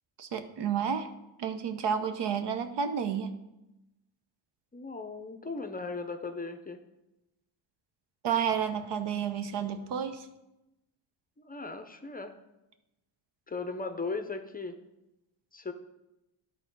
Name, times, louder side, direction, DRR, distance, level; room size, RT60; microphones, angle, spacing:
voice 1, 0.2-1.1 1.4-3.3 8.2-10.3, right 7 dB, 65° right, 9 dB, 0.9 m, -31 dB
voice 2, 4.7-6.8 11.4-12.3 13.5-14.7 15.5-15.7, left 3 dB, 20° left, 8 dB, 0.6 m, -37 dB
11.0 x 4.0 x 5.3 m, 0.95 s
cardioid pair, 90°, 45 cm